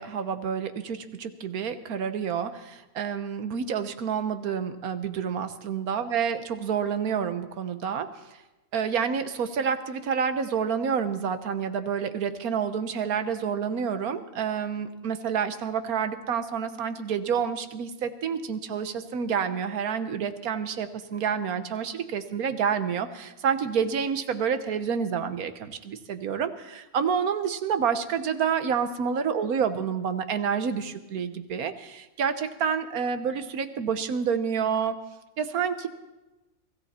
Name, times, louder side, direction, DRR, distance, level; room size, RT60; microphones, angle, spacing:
voice 1, 0.0-8.1 8.7-34.9 35.4-35.9, right 7 dB, 90° right, 10 dB, 1.5 m, -28 dB
23.5 x 14.0 x 4.3 m, 1.0 s
omnidirectional pair, 1.5 m